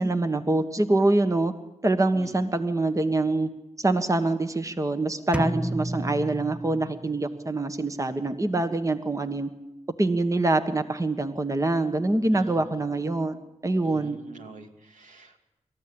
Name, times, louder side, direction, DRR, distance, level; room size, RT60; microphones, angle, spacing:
voice 1, 0.0-1.5 1.8-3.5 3.8-9.5 10.0-13.4 13.6-14.2, right 2 dB, 25° right, 9 dB, 1.5 m, -25 dB
sound 1, 5.3-7.2, right 1 dB, 10° right, 0.7 m, -30 dB
voice 2, 12.3-12.7 13.8-15.4, right 4 dB, 80° right, 4 dB, 2.5 m, -46 dB
26.0 x 14.0 x 8.9 m, 0.94 s
cardioid pair, 55°, 13 cm